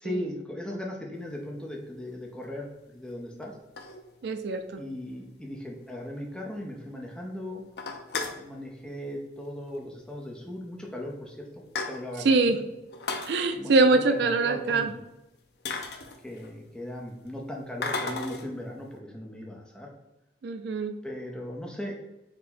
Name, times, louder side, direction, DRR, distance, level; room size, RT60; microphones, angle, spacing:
voice 1, 0.0-3.6 4.8-7.6 8.3-11.5 11.9-12.6 13.5-14.9 16.2-19.9 21.0-21.9, left 1 dB, 5° left, -1 dB, 0.6 m, -38 dB
sound 1, 1.5-1.7 2.4-2.5 3.4-4.4 4.8-4.9 5.2-5.3 5.6-5.7 6.0-6.1 6.5-6.9 7.3-7.4 7.7-8.5 9.6-9.8 10.1-10.2 10.9-11.0 11.3-12.3 12.9-13.3 15.0-15.1 15.6-16.7 17.8-18.5, left 4 dB, 65° left, 0.5 m, -35 dB
voice 2, 4.2-4.8 12.2-12.6 13.3-14.9 20.4-20.9, right 3 dB, 70° right, 7 dB, 0.4 m, -23 dB
4.4 x 2.1 x 4.2 m, 0.98 s
head